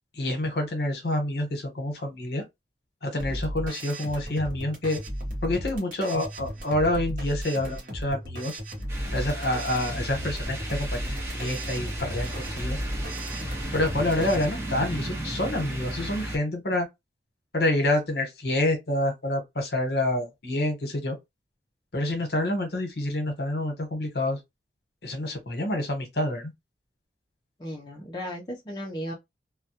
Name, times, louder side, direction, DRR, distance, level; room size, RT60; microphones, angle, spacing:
voice 1, 0.1-2.4 3.0-5.0 5.4-8.6 9.1-12.8 13.7-16.9 17.5-21.2 21.9-24.4 25.0-26.5, left 1 dB, 60° left, 0.9 m, -27 dB
sound 1, 3.2-14.4, equal, 45° right, 0.9 m, -35 dB
sound 2, 8.9-16.4, right 1 dB, 15° right, 0.7 m, -34 dB
voice 2, 27.6-29.1, equal, 25° left, 0.4 m, -35 dB
2.2 x 2.1 x 2.7 m
head